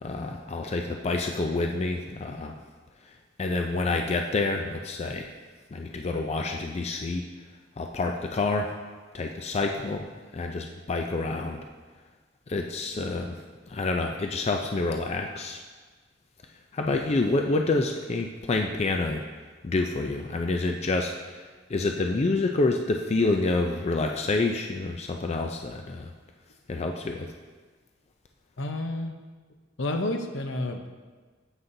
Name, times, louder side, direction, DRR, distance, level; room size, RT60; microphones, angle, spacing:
voice 1, 0.0-2.5 3.4-5.3 5.7-7.2 7.8-8.7 9.1-10.1 10.3-11.6 12.5-13.4 13.7-15.6 16.7-19.2 19.6-26.1 26.7-27.3, left 3 dB, 35° left, 3 dB, 0.4 m, -28 dB
voice 2, 28.6-29.2 29.8-30.9, left 2 dB, 70° left, 5 dB, 0.7 m, -30 dB
9.5 x 8.0 x 2.7 m, 1.4 s
head